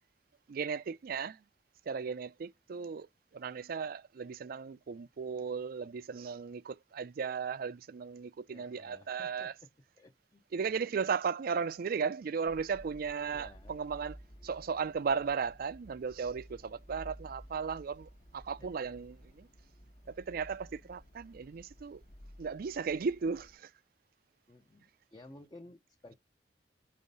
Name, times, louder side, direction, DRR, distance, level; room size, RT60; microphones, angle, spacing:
voice 1, 0.5-1.4 1.9-3.1 3.3-9.5 10.5-14.2 14.4-19.5 20.1-22.0 22.4-23.7, right 5 dB, 55° right, 0.4 m, -36 dB
voice 2, 8.5-9.5 10.0-10.5 13.3-13.7 18.6-18.9 24.5-26.1, left 2 dB, 25° left, 0.6 m, -55 dB
sound 1, 12.5-23.6, equal, 40° left, 1.0 m, -54 dB
5.6 x 3.4 x 5.3 m
head